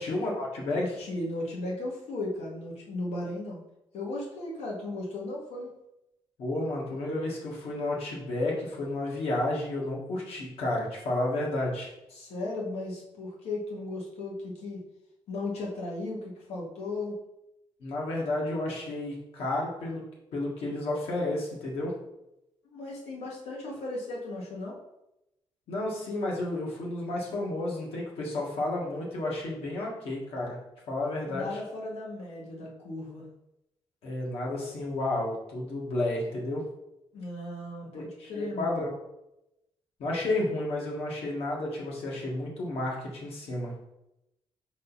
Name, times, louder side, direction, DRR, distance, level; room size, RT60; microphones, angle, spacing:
voice 1, 0.0-0.8 6.4-11.9 17.8-20.0 20.3-21.9 25.7-30.6 30.9-31.5 34.0-36.6 37.9-38.9 40.0-43.7, left 2 dB, 70° left, -3 dB, 1.8 m, -31 dB
voice 2, 0.7-3.6 3.9-5.7 12.1-14.8 15.3-17.2 22.6-24.8 31.3-33.3 37.1-38.7, left 2 dB, 85° left, -3 dB, 1.8 m, -36 dB
5.6 x 4.1 x 4.1 m, 0.87 s
cardioid pair, 170°, 10 cm